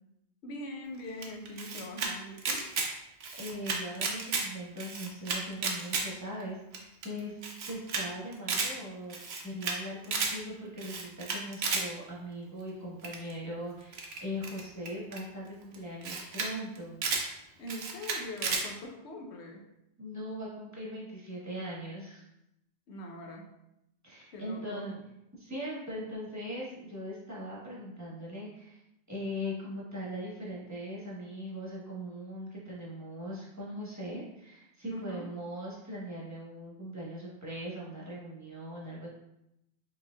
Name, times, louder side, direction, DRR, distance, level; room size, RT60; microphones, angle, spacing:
voice 1, 0.4-2.7 17.6-19.7 22.9-23.5 24.3-24.9 34.9-35.3, left 1 dB, 90° left, 1 dB, 0.9 m, -42 dB
Camera, 1.2-2.1 2.4-2.9 3.2-4.4 4.8-6.0 6.4-6.5 6.7-6.8 7.0-7.1 7.4-8.0 8.3-8.7 9.1-9.8 10.0-10.3 10.8-11.8 13.0-13.3 13.9-15.2 15.7-15.8 16.0-16.5 16.7-17.2 17.7-18.6, right 4 dB, 75° right, 0.9 m, -32 dB
voice 2, 3.1-7.3 7.7-9.2 9.4-17.0 20.0-22.2 24.0-25.0 25.4-28.8 29.1-39.1, equal, 15° right, -6 dB, 1.1 m, -40 dB
4.9 x 3.2 x 2.3 m, 0.84 s
omnidirectional pair, 1.1 m